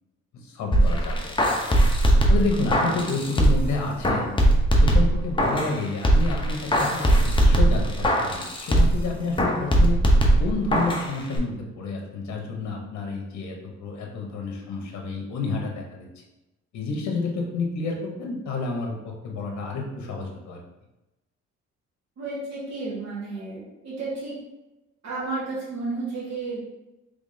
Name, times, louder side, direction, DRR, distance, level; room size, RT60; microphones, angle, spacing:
voice 1, 0.3-1.4 2.3-4.3 4.8-10.0 10.4-13.5 13.8-16.1 16.7-20.6, left 3 dB, 65° left, 1 dB, 0.8 m, -30 dB
sound 1, 0.7-3.7 4.0-5.7 6.0-9.0 9.4-11.1 11.4-11.5, right 1 dB, 15° left, 0.7 m, -20 dB
voice 2, 22.2-24.3 25.0-26.6, right 3 dB, 60° right, -7 dB, 1.4 m, -32 dB
3.5 x 3.4 x 2.6 m, 0.97 s
cardioid pair, 90°, 30 cm